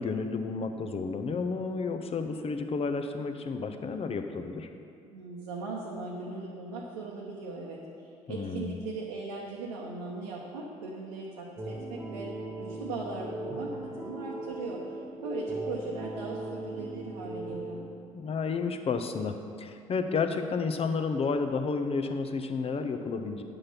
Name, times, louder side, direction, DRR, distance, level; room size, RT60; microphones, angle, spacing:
voice 1, 0.0-4.7 8.3-8.8 18.1-23.4, left 4 dB, 35° left, 6 dB, 0.8 m, -31 dB
voice 2, 5.0-7.8 8.3-12.3 12.6-14.8 15.2-17.8, right 3 dB, 75° right, -4 dB, 1.0 m, -38 dB
sound 1, 11.6-17.8, right 2 dB, 15° right, 1.6 m, -38 dB
9.0 x 6.4 x 5.8 m, 2.4 s
figure-of-eight pair, 55°, 18 cm